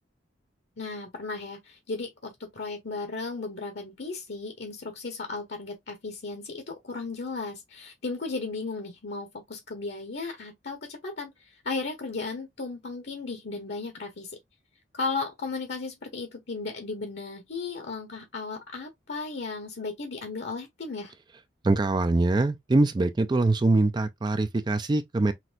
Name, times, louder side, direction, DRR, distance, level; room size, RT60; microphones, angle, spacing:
voice 1, 0.8-14.4 14.9-21.1, left 3 dB, 60° left, 1.0 m, -35 dB
voice 2, 21.6-25.3, right 2 dB, 25° right, 0.3 m, -23 dB
5.9 x 2.7 x 2.5 m
head